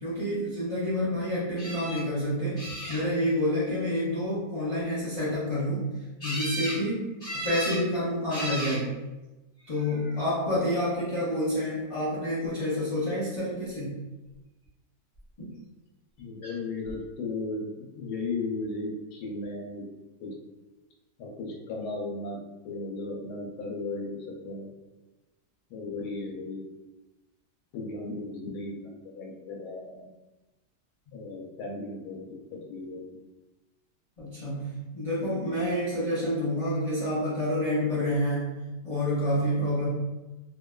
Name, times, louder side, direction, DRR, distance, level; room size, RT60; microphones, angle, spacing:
voice 1, 0.0-2.6 2.9-5.9 6.2-7.1 7.4-8.9 9.7-14.0 15.4-15.5 34.2-39.9, equal, 60° left, -10 dB, 0.3 m, -28 dB
sound 1, 1.6-2.0 2.6-3.3 6.2-6.8 7.2-7.8 8.3-8.8 9.7-10.2 16.4-16.5 16.9-17.0, equal, 40° left, 1.1 m, -35 dB
voice 2, 16.2-19.9 20.2-20.4 21.2-24.7 25.7-26.6 27.7-30.1 31.1-32.3 32.5-33.2, left 3 dB, 80° left, -1 dB, 1.1 m, -36 dB
2.6 x 2.2 x 2.2 m, 1.1 s
omnidirectional pair, 1.7 m